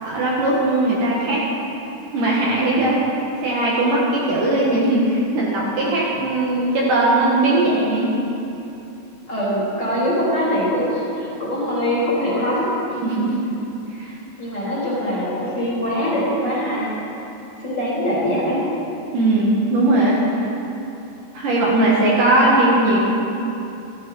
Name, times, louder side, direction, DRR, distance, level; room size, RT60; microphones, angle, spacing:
voice 1, 0.0-1.4 2.1-8.1 13.0-13.3 13.9-14.1 19.1-20.5 21.3-23.0, right 2 dB, 60° right, -5 dB, 2.9 m, -19 dB
voice 2, 9.3-12.7 14.4-17.0 17.6-18.6, equal, 25° left, -8 dB, 4.1 m, -22 dB
14.5 x 12.0 x 5.5 m, 2.9 s
omnidirectional pair, 4.8 m